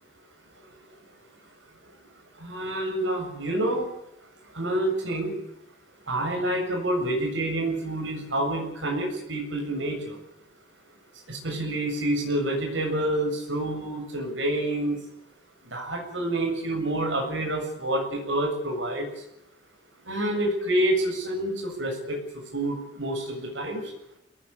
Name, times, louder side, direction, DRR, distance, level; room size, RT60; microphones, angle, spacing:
voice 1, 2.4-3.9 4.5-5.3 6.1-10.2 11.3-15.0 15.7-19.1 20.1-22.2 22.5-23.8, right 1 dB, 90° right, 1 dB, 7.6 m, -28 dB
23.0 x 19.0 x 10.0 m, 0.82 s
head